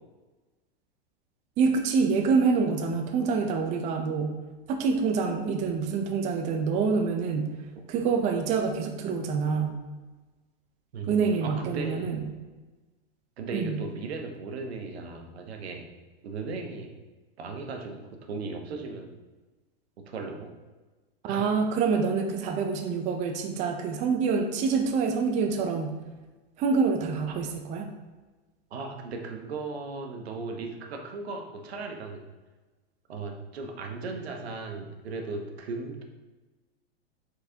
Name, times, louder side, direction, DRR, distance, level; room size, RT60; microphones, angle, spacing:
voice 1, 1.6-4.3 4.7-7.5 7.9-9.8 11.1-12.3 13.5-13.8 21.2-25.9 26.6-27.9, right 5 dB, 25° right, 4 dB, 0.4 m, -26 dB
voice 2, 10.9-12.1 13.4-15.9 16.2-16.9 17.4-19.1 20.1-20.5 21.3-21.4 27.3-27.4 28.7-32.2 33.1-36.0, right 3 dB, 90° right, 3 dB, 0.9 m, -37 dB
4.6 x 3.9 x 2.8 m, 1.2 s
hypercardioid pair, 130°, 31 cm